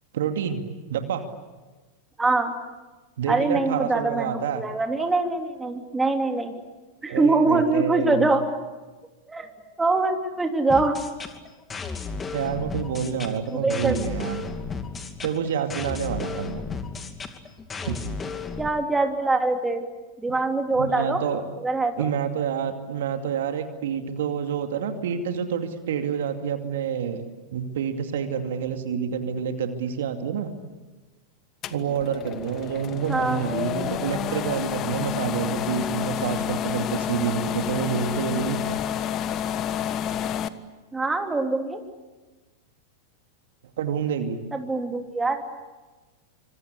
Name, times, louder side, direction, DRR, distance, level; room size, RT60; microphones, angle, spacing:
voice 1, 0.1-0.6 0.9-1.2 3.2-4.6 7.1-8.3 12.3-14.4 15.2-16.6 17.8-18.0 20.7-21.4 22.0-27.2 27.5-30.5 31.7-38.8 43.8-44.4, right 7 dB, 65° right, 6 dB, 2.4 m, -28 dB
voice 2, 2.2-2.5 3.3-6.5 7.0-8.4 9.3-9.5 9.8-11.0 13.5-14.0 18.6-19.8 20.2-21.2 21.6-21.9 33.1-33.4 40.9-41.8 44.5-45.4, right 3 dB, 10° right, 4 dB, 3.1 m, -23 dB
sound 1, 10.7-18.7, left 5 dB, 20° left, 2.6 m, -34 dB
sound 2, 31.6-40.5, left 9 dB, 35° left, 1.4 m, -29 dB
26.5 x 25.5 x 8.5 m, 1.2 s
figure-of-eight pair, 95°, 0 cm